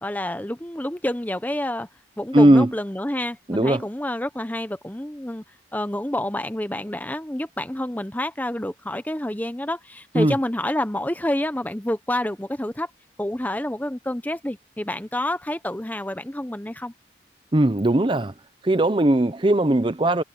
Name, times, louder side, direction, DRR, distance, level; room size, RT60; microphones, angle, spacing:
voice 1, 0.0-1.9 2.2-5.4 5.7-12.9 13.2-16.9, left 1 dB, 10° left, 0.9 m, -28 dB
voice 2, 2.3-2.7 3.5-3.8 10.1-10.4 17.5-18.3 18.6-20.2, right 1 dB, 30° right, 0.7 m, -18 dB
head